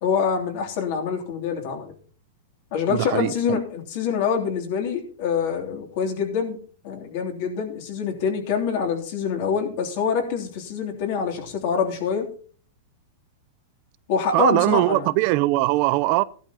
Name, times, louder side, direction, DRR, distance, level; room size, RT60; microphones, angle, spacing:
voice 1, 0.0-1.9 2.7-6.6 6.8-12.3 14.1-15.1, left 6 dB, 55° left, 3.1 m, -25 dB
voice 2, 2.9-3.6 14.3-16.2, right 18 dB, 50° right, 0.5 m, -21 dB
15.0 x 11.5 x 2.9 m
supercardioid pair, 140°, 0 cm